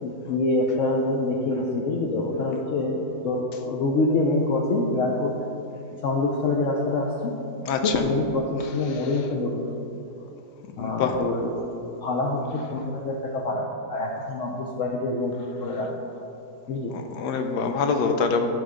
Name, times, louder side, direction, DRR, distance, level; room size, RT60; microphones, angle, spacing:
voice 1, 0.0-5.4 5.9-7.4 7.8-9.6 10.8-15.9 16.7-16.9, left 2 dB, 65° left, 0 dB, 0.9 m, -26 dB
voice 2, 7.6-8.1 8.9-9.0 10.8-11.2 16.9-18.5, left 5 dB, 90° left, 6 dB, 1.3 m, -25 dB
11.0 x 4.0 x 5.0 m, 2.8 s
omnidirectional pair, 1.7 m